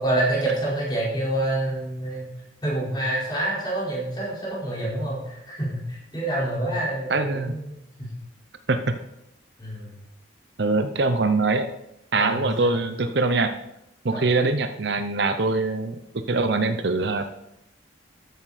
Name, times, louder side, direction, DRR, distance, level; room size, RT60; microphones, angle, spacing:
voice 1, 0.0-2.3 2.6-8.1 9.6-9.9 12.1-12.8 14.1-14.3, right 1 dB, 25° left, -6 dB, 4.5 m, -27 dB
voice 2, 7.1-7.5 8.7-8.9 10.6-11.7 12.1-13.5 14.0-16.0 16.3-17.3, right 3 dB, 60° right, 9 dB, 0.7 m, -23 dB
13.5 x 9.3 x 4.2 m, 0.84 s
head